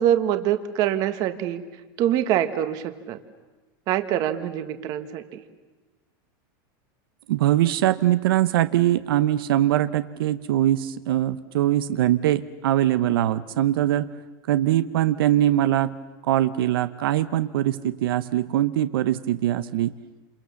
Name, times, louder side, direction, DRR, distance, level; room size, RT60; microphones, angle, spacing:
voice 1, 0.0-1.6 2.0-3.2 3.9-5.4, right 11 dB, 30° right, 10 dB, 1.4 m, -24 dB
voice 2, 7.3-14.1 14.5-16.0 16.3-19.9, right 13 dB, 75° right, 13 dB, 0.8 m, -22 dB
29.0 x 28.0 x 7.1 m, 1.2 s
supercardioid pair, 180°, 12 cm